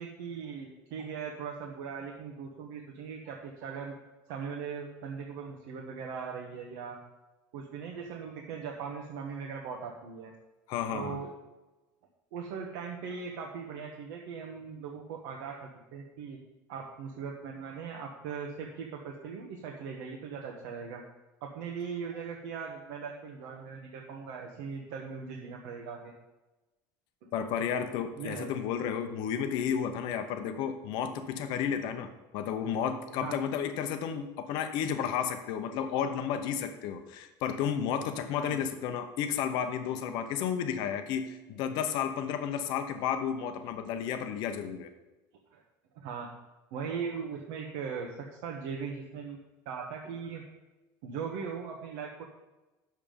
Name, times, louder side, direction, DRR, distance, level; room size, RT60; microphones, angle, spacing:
voice 1, 0.0-3.9 4.3-7.0 7.5-10.3 10.9-11.3 12.3-16.4 16.7-21.0 21.4-26.1 27.2-27.3 28.2-28.5 33.2-33.4 38.4-38.6 45.5-45.6 45.9-46.3 46.7-49.4 49.6-50.4 51.0-52.2, right 6 dB, 75° right, 0 dB, 1.3 m, -39 dB
voice 2, 10.7-11.2 27.3-44.9, left 8 dB, 55° left, 8 dB, 0.8 m, -32 dB
9.2 x 7.3 x 5.2 m, 1.1 s
cardioid pair, 175°, 9 cm